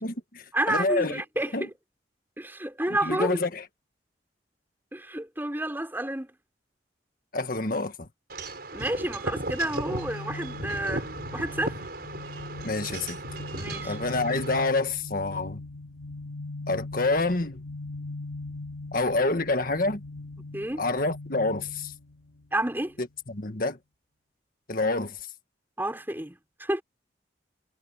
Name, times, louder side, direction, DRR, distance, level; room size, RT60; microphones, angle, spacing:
voice 1, 0.0-1.2 1.5-1.7 3.0-3.7 7.3-8.1 12.6-13.2 13.9-15.6 16.7-17.6 18.9-20.0 20.8-21.9 23.0-23.8 24.7-25.2, left 2 dB, 50° left, 1.7 m, -27 dB
voice 2, 0.5-1.5 2.4-3.3 4.9-6.3 8.7-11.8 13.5-14.0 20.4-20.8 22.5-22.9 25.8-26.8, right 1 dB, 10° right, 4.2 m, -30 dB
Wind chime / Wind, 8.3-14.6, right 2 dB, 55° right, 6.3 m, -36 dB
sound 1, 9.8-22.8, left 2 dB, 90° left, 4.6 m, -40 dB
head